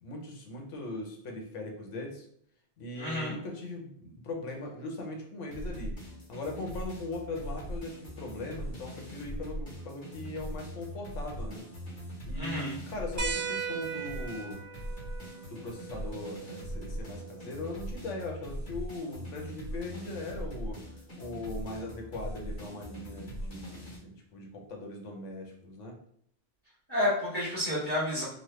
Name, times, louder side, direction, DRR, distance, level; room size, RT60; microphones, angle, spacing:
voice 1, 0.0-2.3 2.8-6.0 6.3-11.6 12.2-14.6 15.5-20.8 21.2-25.9, left 2 dB, 75° left, 2 dB, 1.0 m, -40 dB
voice 2, 3.0-3.3 12.3-12.7 26.9-28.2, left 1 dB, 10° left, -10 dB, 1.5 m, -30 dB
sound 1, 5.5-24.0, equal, 50° left, 1.4 m, -41 dB
sound 2, 13.2-18.2 19.8-19.9 21.5-21.6, right 5 dB, 20° right, 0.5 m, -39 dB
3.1 x 2.1 x 3.0 m, 0.66 s
omnidirectional pair, 1.3 m